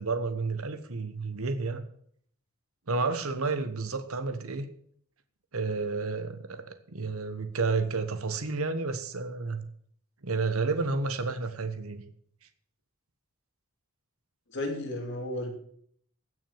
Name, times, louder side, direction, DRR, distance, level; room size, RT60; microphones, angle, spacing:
voice 1, 0.0-1.8 2.9-4.7 5.5-9.6 10.2-12.0, right 4 dB, 75° right, 10 dB, 1.2 m, -31 dB
voice 2, 14.5-15.5, left 1 dB, 50° left, 2 dB, 3.1 m, -33 dB
16.0 x 6.3 x 7.1 m, 0.63 s
head